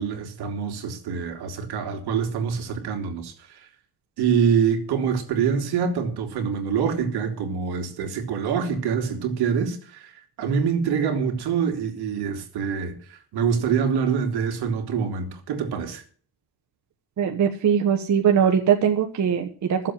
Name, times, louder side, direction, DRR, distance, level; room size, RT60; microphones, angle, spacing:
voice 1, 0.0-3.7 4.2-16.0, right 6 dB, 75° right, 3.0 m, -25 dB
voice 2, 17.2-19.9, right 8 dB, 45° right, 1.3 m, -21 dB
14.0 x 7.7 x 7.5 m
cardioid pair, 120°, 40 cm